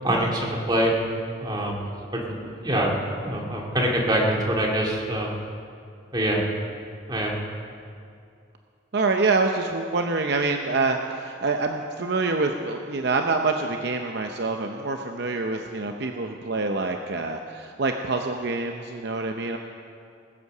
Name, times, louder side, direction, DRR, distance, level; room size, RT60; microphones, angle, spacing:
voice 1, 0.0-0.9 1.4-1.9 2.6-5.3 6.1-6.4 7.1-7.4, right 1 dB, 20° right, -2 dB, 2.1 m, -24 dB
voice 2, 8.9-19.6, right 3 dB, 55° right, 4 dB, 0.7 m, -26 dB
20.5 x 8.3 x 6.6 m, 2.4 s
head